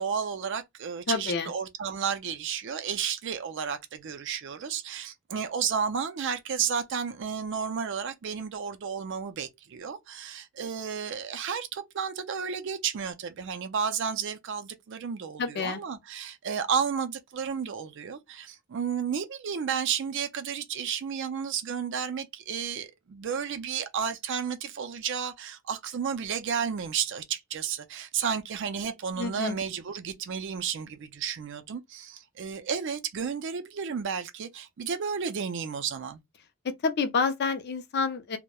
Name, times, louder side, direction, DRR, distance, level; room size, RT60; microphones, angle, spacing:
voice 1, 0.0-36.2, right 7 dB, 55° right, 0.4 m, -32 dB
voice 2, 1.1-1.5 15.4-15.8 29.2-29.5 36.8-38.4, left 4 dB, 50° left, 0.4 m, -28 dB
2.9 x 2.1 x 2.2 m
head